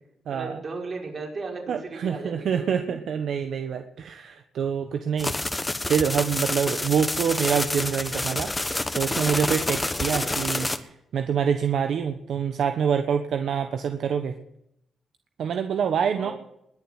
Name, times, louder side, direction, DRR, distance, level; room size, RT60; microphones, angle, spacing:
voice 1, 0.3-3.0 16.1-16.3, right 3 dB, 50° right, 0 dB, 5.6 m, -36 dB
voice 2, 1.7-5.3 5.9-8.5 9.0-14.3 15.4-16.3, right 7 dB, 75° right, 7 dB, 1.2 m, -26 dB
sound 1, 5.2-10.8, left 2 dB, 20° left, 1.4 m, -28 dB
21.0 x 7.3 x 9.5 m, 0.80 s
cardioid pair, 75°, 0 cm